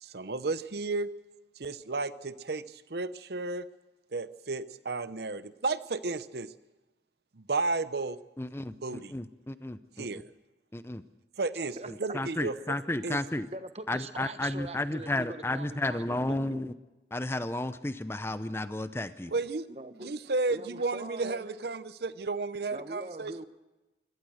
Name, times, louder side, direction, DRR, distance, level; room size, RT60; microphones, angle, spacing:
voice 1, 0.0-1.1 1.6-3.7 4.1-6.5 7.4-8.2 8.7-9.1 10.0-10.2 11.4-12.8 13.0-13.2 19.3-19.7 20.0-23.4, right 3 dB, 65° right, 14 dB, 0.8 m, -33 dB
voice 2, 8.4-10.2 10.7-11.0 12.1-13.5 13.9-16.7 17.1-19.3, left 1 dB, 15° left, 12 dB, 0.6 m, -33 dB
voice 3, 11.8-12.1 13.5-16.6 19.7-20.1 20.5-21.7 22.7-23.5, right 2 dB, 35° right, 10 dB, 1.2 m, -42 dB
24.0 x 17.5 x 6.4 m, 1.1 s
head